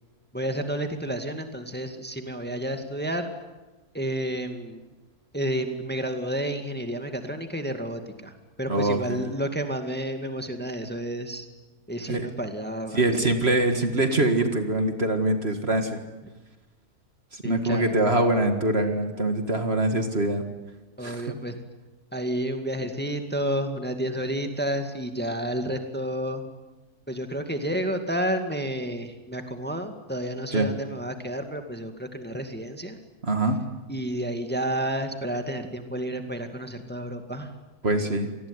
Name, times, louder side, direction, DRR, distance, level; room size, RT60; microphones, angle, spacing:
voice 1, 0.3-3.3 3.9-4.8 5.3-8.3 8.6-11.5 11.9-13.3 17.4-18.0 21.0-21.6 22.1-26.5 27.1-33.0 33.9-37.5, right 1 dB, 5° left, 6 dB, 2.0 m, -30 dB
voice 2, 8.7-9.2 12.1-12.3 12.9-16.0 17.3-20.4 21.0-21.3 30.5-30.7 33.2-33.6 37.8-38.3, right 2 dB, 40° right, 6 dB, 2.1 m, -24 dB
27.5 x 19.5 x 9.7 m, 1.1 s
omnidirectional pair, 1.6 m